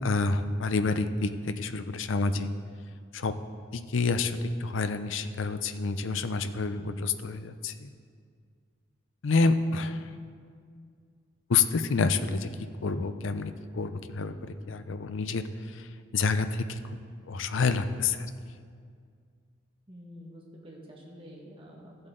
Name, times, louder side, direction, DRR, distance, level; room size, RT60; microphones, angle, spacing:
voice 1, 0.0-2.5 3.1-3.4 3.7-7.9 9.2-10.0 11.5-12.5 12.8-15.4 15.7-15.9 16.1-16.8 17.3-18.3, left 4 dB, 70° left, 10 dB, 0.5 m, -28 dB
voice 2, 19.9-22.1, equal, 25° right, -2 dB, 1.6 m, -48 dB
14.0 x 7.9 x 3.8 m, 2.1 s
head